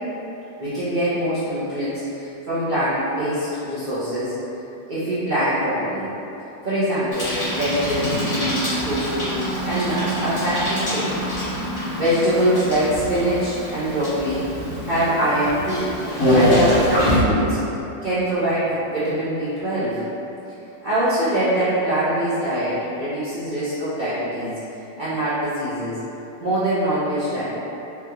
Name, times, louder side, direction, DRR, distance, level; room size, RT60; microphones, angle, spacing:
voice 1, 0.6-4.4 4.9-6.1 6.6-9.3 9.6-11.2 12.0-14.5 14.8-15.9 16.3-17.6 18.0-20.0 20.8-24.5 25.0-26.0 26.4-27.4, right 1 dB, 70° right, -13 dB, 0.4 m, -23 dB
Bicycle, 7.1-17.2, equal, 55° left, 1.8 m, -24 dB
5.0 x 2.3 x 2.9 m, 2.9 s
omnidirectional pair, 1.9 m